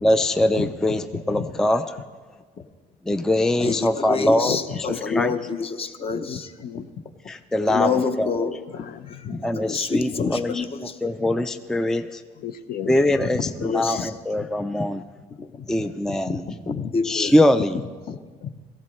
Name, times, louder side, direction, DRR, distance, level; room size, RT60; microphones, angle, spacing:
voice 1, 0.0-2.0 3.1-5.3 7.3-8.3 9.3-12.2 12.9-15.0 15.7-16.6 17.0-17.8, left 1 dB, 5° left, 10 dB, 0.4 m, -23 dB
voice 2, 1.1-1.4 3.6-6.5 7.7-8.6 9.6-11.1 13.6-14.1 15.4-15.7 16.1-16.4 16.7-17.4 18.1-18.5, left 5 dB, 35° left, 9 dB, 0.8 m, -27 dB
voice 3, 4.9-5.2 6.1-6.8 8.7-9.4 12.4-12.9 13.9-14.0 15.8-15.9, left 9 dB, 60° left, 10 dB, 0.6 m, -34 dB
17.0 x 15.0 x 3.2 m, 1.5 s
cardioid pair, 110°, 17 cm